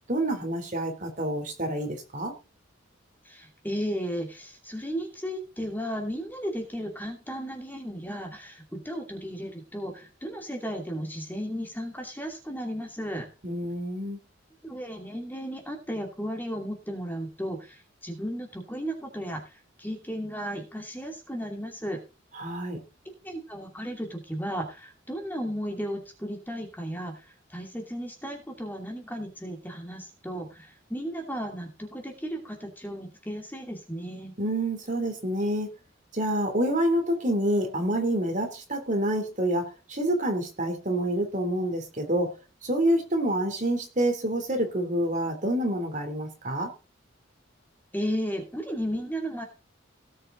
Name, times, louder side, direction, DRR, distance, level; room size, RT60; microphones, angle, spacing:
voice 1, 0.1-2.3 13.4-14.2 22.3-22.8 34.4-35.7 36.1-42.3 42.6-46.7, right 1 dB, 40° right, 4 dB, 3.1 m, -27 dB
voice 2, 3.2-13.3 14.6-22.0 23.2-34.3 47.9-49.4, equal, 10° left, 2 dB, 2.5 m, -34 dB
18.0 x 6.6 x 3.9 m, 0.32 s
head